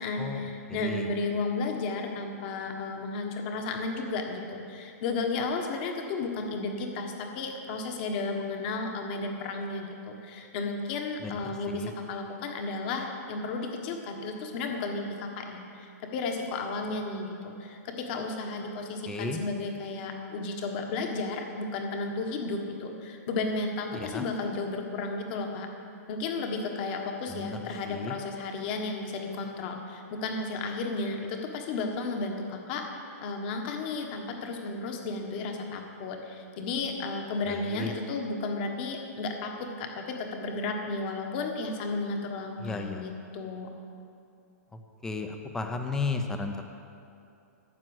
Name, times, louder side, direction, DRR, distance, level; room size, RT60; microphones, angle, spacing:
voice 1, 0.0-25.7 26.1-32.8 33.2-43.7, left 3 dB, 35° left, 3 dB, 1.4 m, -33 dB
voice 2, 0.7-1.1 11.2-11.4 11.7-11.9 19.1-19.4 24.1-24.2 27.3-27.6 27.9-28.1 37.5-37.9 42.6-43.0 45.0-46.6, left 3 dB, 5° left, 5 dB, 0.7 m, -33 dB
12.5 x 7.6 x 7.9 m, 2.6 s
hypercardioid pair, 165°, 9 cm